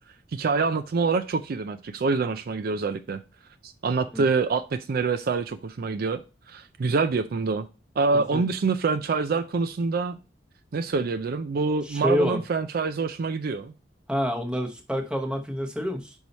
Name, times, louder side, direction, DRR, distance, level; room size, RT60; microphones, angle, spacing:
voice 1, 0.3-3.2 3.6-6.2 6.5-7.7 8.0-10.2 10.7-13.7, right 4 dB, 55° right, 10 dB, 0.4 m, -26 dB
voice 2, 11.8-12.4 14.1-16.1, equal, 5° right, 3 dB, 0.9 m, -27 dB
5.5 x 4.7 x 4.1 m, 0.31 s
head